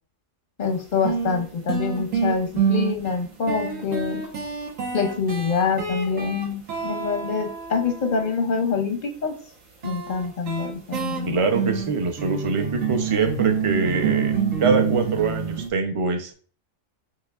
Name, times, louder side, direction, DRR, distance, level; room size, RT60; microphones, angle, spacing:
voice 1, 0.6-4.2 4.9-9.4 9.8-11.4, left 5 dB, 50° left, 4 dB, 0.6 m, -25 dB
sound 1, 0.6-0.7 1.0-8.3 9.8-15.7, right 7 dB, 90° right, 1.5 m, -27 dB
voice 2, 11.3-16.3, right 4 dB, 35° right, 5 dB, 0.6 m, -24 dB
6.7 x 3.0 x 2.4 m, 0.40 s
omnidirectional pair, 1.3 m